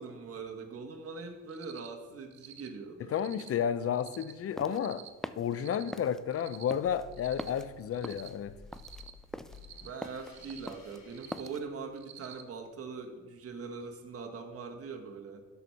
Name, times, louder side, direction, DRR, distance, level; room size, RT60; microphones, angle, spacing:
voice 1, 0.0-3.1 9.8-15.4, right 4 dB, 50° right, 4 dB, 1.4 m, -42 dB
Cricket, 1.5-1.9 2.3-2.7 3.1-3.5 3.9-4.3 4.7-5.1 5.5-5.9 6.3-6.7 7.1-7.5 7.9-8.3 8.7-9.1 9.5-9.9 10.3-10.7 11.1-11.5 12.0-12.4, right 11 dB, 65° right, 0.9 m, -50 dB
voice 2, 3.0-5.0 5.4-8.5, left 8 dB, 50° left, 14 dB, 0.7 m, -32 dB
sound 1, 4.3-11.7, left 1 dB, ahead, 0.3 m, -44 dB
sound 2, 6.8-12.1, left 5 dB, 80° left, 2.8 m, -54 dB
12.0 x 4.7 x 5.7 m, 1.2 s
cardioid pair, 90°, 30 cm